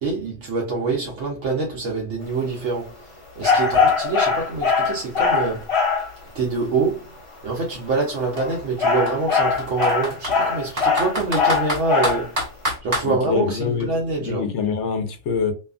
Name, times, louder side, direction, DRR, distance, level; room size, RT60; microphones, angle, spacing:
voice 1, 0.0-5.7 6.3-7.1 7.4-12.3 12.8-14.5, right 3 dB, 80° right, 1.0 m, -25 dB
sound 1, 3.4-6.1 8.2-12.3, left 5 dB, 40° left, 0.5 m, -21 dB
Computer keyboard, 4.8-4.9 5.2-7.1 7.9-8.0 8.4-8.5 9.1-10.4 10.8-13.1, equal, 35° right, 1.2 m, -28 dB
voice 2, 13.0-13.9 14.2-15.5, left 6 dB, 75° left, 0.9 m, -24 dB
2.7 x 2.3 x 2.3 m
omnidirectional pair, 1.2 m